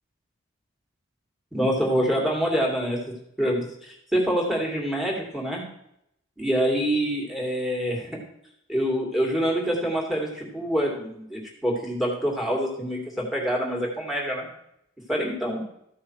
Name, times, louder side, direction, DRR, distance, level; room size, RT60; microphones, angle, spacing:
voice 1, 1.5-3.0 3.4-5.6 6.4-8.1 8.7-14.5 15.1-15.6, equal, ahead, -1 dB, 2.6 m, -26 dB
14.0 x 6.1 x 4.8 m, 0.76 s
head